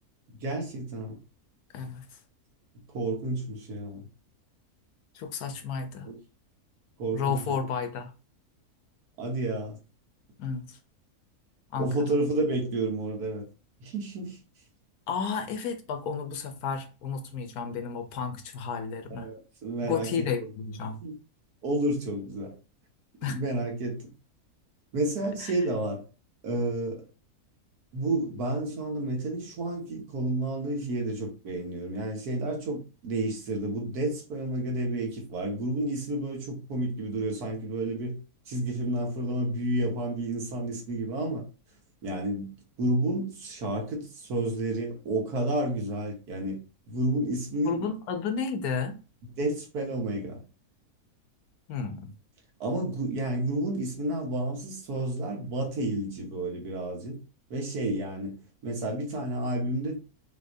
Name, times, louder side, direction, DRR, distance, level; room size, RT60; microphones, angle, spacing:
voice 1, 0.3-1.2 2.9-4.1 6.1-6.2 7.0-7.5 9.2-9.8 11.8-13.5 13.8-14.4 19.1-20.5 21.0-21.1 21.6-22.6 23.3-24.1 24.9-26.0 26.4-27.1 27.9-38.2 38.5-41.4 42.0-46.6 46.9-47.8 49.4-50.4 52.6-57.2 57.5-60.0, right 1 dB, 85° right, 1.7 m, -30 dB
voice 2, 1.7-2.0 5.1-6.1 7.1-8.1 10.4-10.8 11.7-12.0 15.1-19.3 19.8-21.0 23.2-23.4 25.4-25.5 47.6-49.0 51.7-52.1, left 6 dB, 80° left, 1.3 m, -32 dB
5.7 x 2.9 x 2.7 m
omnidirectional pair, 1.6 m